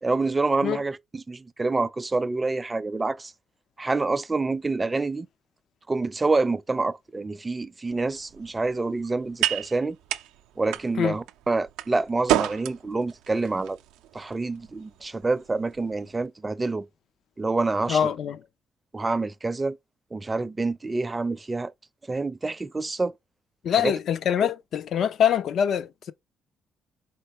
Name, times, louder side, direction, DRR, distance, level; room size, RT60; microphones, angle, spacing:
voice 1, 0.0-3.3 3.8-5.3 5.9-10.0 10.6-13.8 14.1-16.8 17.4-18.0 18.9-19.8 20.1-21.7 22.1-23.1 23.7-23.9 24.4-24.5, right 3 dB, 25° right, 0.4 m, -27 dB
sound 1, 7.9-16.3, right 13 dB, 85° right, 0.4 m, -33 dB
voice 2, 17.9-18.4 23.6-26.1, left 8 dB, 65° left, 0.4 m, -24 dB
4.4 x 3.3 x 2.9 m
supercardioid pair, 60°, 0 cm